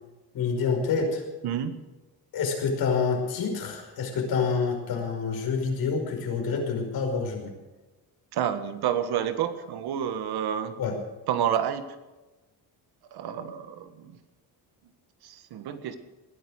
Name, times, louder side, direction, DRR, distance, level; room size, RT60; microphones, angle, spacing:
voice 1, 0.3-1.2 2.3-7.5 10.8-11.0, left 5 dB, 60° left, 2 dB, 5.4 m, -27 dB
voice 2, 1.4-1.8 8.3-10.7 11.3-12.0 13.1-14.1 15.2-16.0, right 9 dB, 70° right, 9 dB, 1.8 m, -29 dB
20.0 x 11.0 x 6.5 m, 1.1 s
cardioid pair, 125°, 40 cm